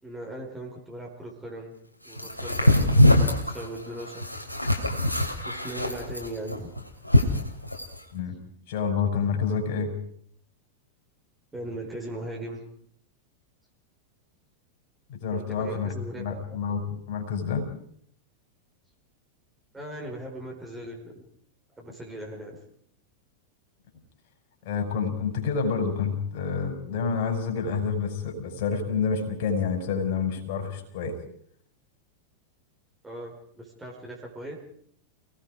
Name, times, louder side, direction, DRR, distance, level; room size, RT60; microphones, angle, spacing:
voice 1, 0.0-1.7 2.0-3.2 3.5-4.2 5.4-6.7 11.5-12.6 15.3-16.4 19.7-21.2 21.8-22.6 33.0-34.6, right 1 dB, 10° right, -2 dB, 4.8 m, -39 dB
sound 1, 2.2-8.0, left 1 dB, 85° left, 2.9 m, -23 dB
voice 2, 8.7-9.9 15.1-17.7 24.6-31.2, left 6 dB, 50° left, 4 dB, 5.8 m, -28 dB
29.0 x 19.0 x 4.9 m, 0.64 s
figure-of-eight pair, 90°, 0 cm